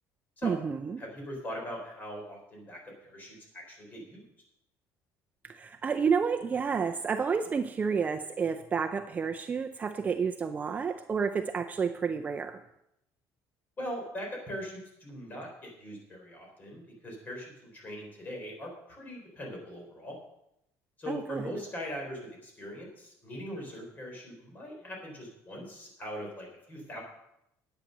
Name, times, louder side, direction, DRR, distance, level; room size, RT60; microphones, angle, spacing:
voice 1, 0.4-1.0 5.4-12.6 21.1-21.5, right 6 dB, 25° right, 6 dB, 0.5 m, -30 dB
voice 2, 1.0-4.3 13.8-20.2 21.0-27.0, equal, 25° left, 0 dB, 4.2 m, -41 dB
10.5 x 8.8 x 6.6 m, 0.82 s
cardioid pair, 150°, 7 cm